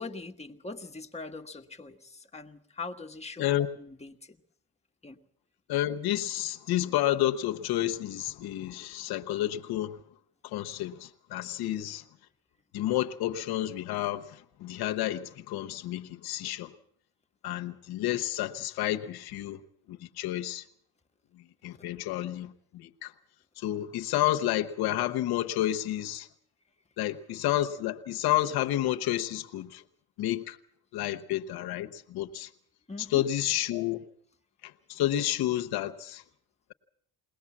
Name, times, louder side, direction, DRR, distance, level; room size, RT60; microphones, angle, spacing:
voice 1, 0.0-4.4 5.0-5.2 18.0-18.1 32.9-33.2, left 3 dB, 15° left, 1.5 m, -42 dB
voice 2, 5.7-10.0 10.4-12.0 12.7-16.7 17.4-19.6 19.9-20.6 21.3-23.1 23.6-26.3 27.0-29.8 30.2-30.6 30.9-32.5 33.1-34.1 34.6-36.2, left 13 dB, 85° left, 1.0 m, -30 dB
22.0 x 18.0 x 7.3 m
cardioid pair, 75°, 37 cm